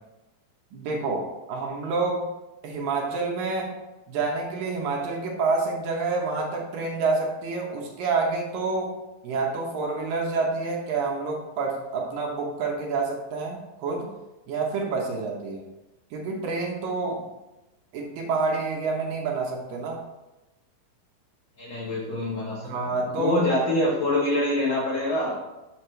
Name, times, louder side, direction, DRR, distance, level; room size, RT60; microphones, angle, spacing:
voice 1, 0.7-2.3 2.6-3.8 4.1-14.1 14.5-15.6 16.1-17.3 17.9-20.0 22.6-23.4, right 3 dB, 70° right, 0 dB, 2.4 m, -28 dB
voice 2, 21.6-22.7 23.1-25.4, left 1 dB, 70° left, -5 dB, 1.1 m, -25 dB
6.9 x 6.4 x 3.2 m, 1.0 s
omnidirectional pair, 4.4 m